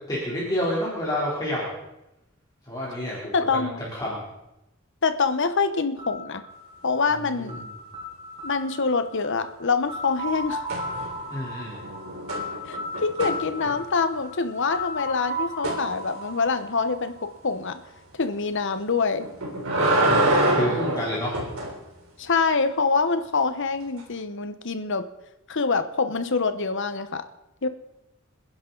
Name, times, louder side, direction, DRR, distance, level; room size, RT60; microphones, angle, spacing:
voice 1, 0.1-1.7 2.7-4.3 7.4-7.5 11.3-11.9 19.8-20.3 20.6-21.4, left 1 dB, 20° left, -7 dB, 3.6 m, -29 dB
voice 2, 3.3-3.8 5.0-6.4 6.8-7.6 8.4-10.6 12.6-17.1 17.4-17.8 18.2-19.3 22.2-25.0 25.5-27.2 27.6-27.7, left 4 dB, 60° left, 10 dB, 1.1 m, -25 dB
sound 1, 6.0-17.8, equal, 25° right, 7.4 m, -36 dB
sound 2, 10.7-11.3 11.7-14.0 15.6-15.8 19.2-21.7 24.0-24.1, right 1 dB, 85° right, 3.7 m, -25 dB
27.5 x 10.5 x 4.0 m, 0.91 s
head